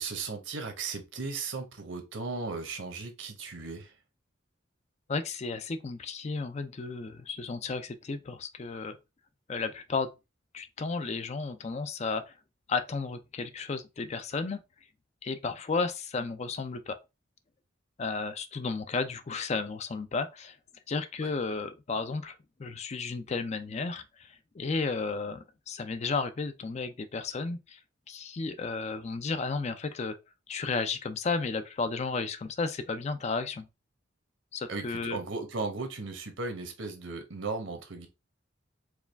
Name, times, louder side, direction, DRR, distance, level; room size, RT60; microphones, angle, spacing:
voice 1, 0.0-3.9 21.2-21.3 34.7-38.1, right 4 dB, 75° right, 1.0 m, -36 dB
voice 2, 5.1-9.0 9.5-10.1 10.5-12.3 12.7-14.6 15.2-17.0 18.0-20.6 20.9-27.8 28.1-30.2 30.5-33.7 34.5-35.2, left 4 dB, 35° left, 0.4 m, -33 dB
4.7 x 2.3 x 3.3 m
head